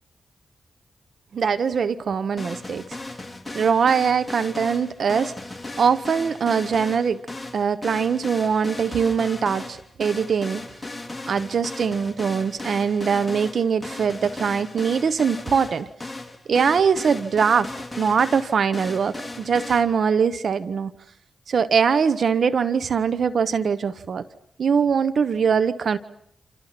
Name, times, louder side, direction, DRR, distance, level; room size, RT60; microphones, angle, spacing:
voice 1, 1.3-2.8 3.5-5.3 5.8-7.2 7.5-10.6 11.3-15.9 16.5-20.9 21.5-24.2 24.6-26.0, right 6 dB, 70° right, 14 dB, 1.0 m, -22 dB
sound 1, 2.4-19.8, left 2 dB, 15° left, 3.9 m, -36 dB
29.0 x 28.0 x 6.0 m, 0.71 s
cardioid pair, 65°, 0 cm